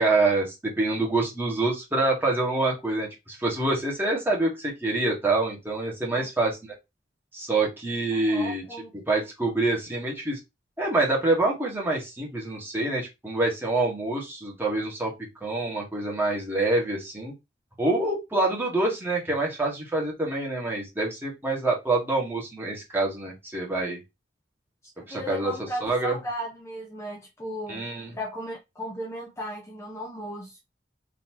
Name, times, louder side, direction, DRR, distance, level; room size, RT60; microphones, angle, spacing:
voice 1, 0.0-6.6 7.3-8.6 9.1-10.4 10.8-15.1 15.4-17.3 17.8-24.0 25.1-25.5 25.8-26.2 27.7-28.1, right 2 dB, 10° right, 1.6 m, -26 dB
voice 2, 8.1-8.9 25.0-27.8 28.1-30.6, equal, 15° left, 0.8 m, -36 dB
3.9 x 3.0 x 3.0 m
head